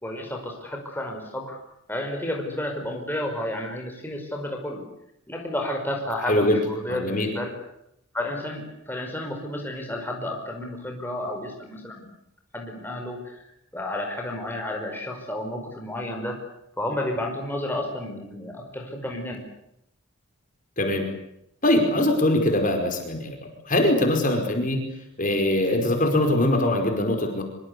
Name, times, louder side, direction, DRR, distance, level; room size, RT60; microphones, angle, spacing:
voice 1, 0.0-1.6 1.9-4.8 5.3-7.5 8.1-12.1 12.5-16.4 16.8-19.4, left 1 dB, 10° left, 1 dB, 5.3 m, -31 dB
voice 2, 6.3-6.6 6.9-7.3 20.8-21.0 21.6-24.8 25.2-27.4, left 1 dB, 35° left, 4 dB, 5.1 m, -22 dB
25.5 x 24.5 x 8.4 m, 0.78 s
head